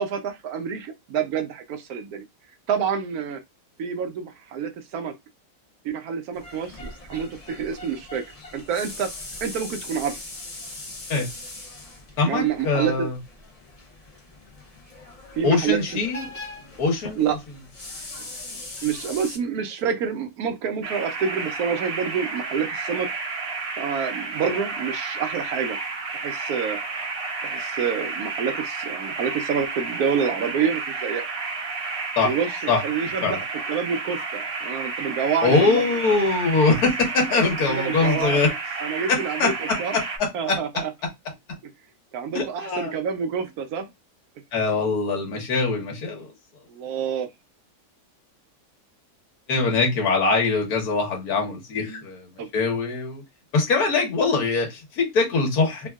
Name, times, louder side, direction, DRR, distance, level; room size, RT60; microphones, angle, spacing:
voice 1, 0.0-2.3 2.7-3.4 3.8-5.1 5.8-8.3 8.5-9.1 9.4-10.2 12.2-13.1 15.3-16.0 17.1-17.4 18.8-23.1 23.8-25.8 26.1-26.8 27.4-31.3 32.2-35.8 37.3-37.4 37.7-40.0 40.3-40.9 42.1-43.9 46.7-47.3 51.8-52.0 52.4-52.5, right 7 dB, 70° right, 1.0 m, -28 dB
sound 1, 6.3-19.4, left 2 dB, 45° left, 0.5 m, -40 dB
voice 2, 12.2-13.2 15.4-16.2 16.8-17.2 32.2-32.3 32.7-32.8 33.2-33.4 35.4-38.5 39.1-40.8 42.3-42.9 44.5-46.3 49.5-53.2 53.5-55.9, left 3 dB, 65° left, 1.5 m, -23 dB
sound 2, 20.8-40.2, right 4 dB, 50° right, 0.7 m, -31 dB
3.5 x 2.3 x 2.3 m
omnidirectional pair, 1.8 m